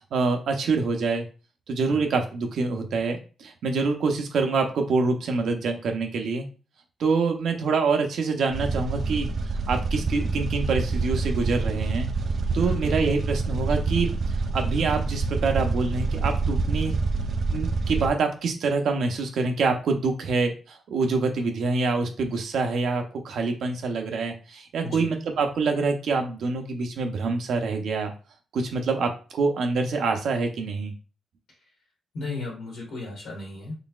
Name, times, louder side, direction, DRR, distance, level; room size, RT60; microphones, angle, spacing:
voice 1, 0.1-1.2 1.7-6.5 7.0-9.3 9.7-12.1 12.5-14.1 14.4-17.0 17.5-28.1 28.5-30.9, right 4 dB, 75° right, 4 dB, 0.8 m, -26 dB
sound 1, 8.5-18.1, right 3 dB, 55° right, 0.3 m, -27 dB
voice 2, 12.6-12.9 24.8-25.1 32.1-33.7, left 2 dB, 90° left, -4 dB, 1.6 m, -35 dB
3.9 x 3.3 x 2.4 m, 0.34 s
cardioid pair, 95°, 0 cm